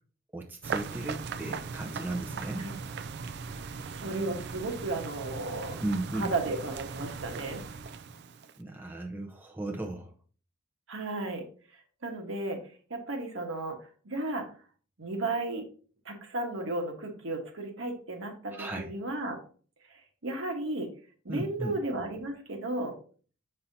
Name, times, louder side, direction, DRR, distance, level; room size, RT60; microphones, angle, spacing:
voice 1, 0.3-2.7 5.8-6.3 8.6-10.1 18.5-18.9 21.3-21.8, right 2 dB, 10° right, 0 dB, 0.7 m, -35 dB
sound 1, 0.6-8.6, right 5 dB, 55° right, 0.4 m, -39 dB
voice 2, 3.8-5.8 6.1-7.6 10.9-11.4 12.0-12.6 12.9-13.8 14.0-14.5 15.0-15.6 16.0-19.4 19.9-20.9 21.2-23.0, right 2 dB, 75° right, 2 dB, 1.3 m, -34 dB
6.6 x 5.6 x 2.7 m, 0.41 s
head